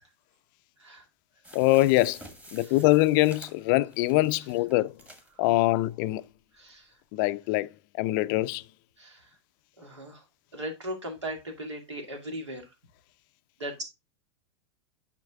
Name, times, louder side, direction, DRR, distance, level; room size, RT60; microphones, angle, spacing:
sound 1, 1.4-5.3 5.9-6.0 6.2-6.3, right 1 dB, 10° right, 1.6 m, -50 dB
voice 1, 1.5-2.2 2.5-4.9 5.4-6.2 7.1-7.7 8.0-8.6, left 18 dB, 45° left, 0.4 m, -23 dB
voice 2, 6.5-6.9 9.0-9.3 9.8-10.2 10.5-12.7 13.6-13.8, right 1 dB, 85° right, 2.2 m, -38 dB
9.4 x 6.0 x 2.3 m
figure-of-eight pair, 95°, 15 cm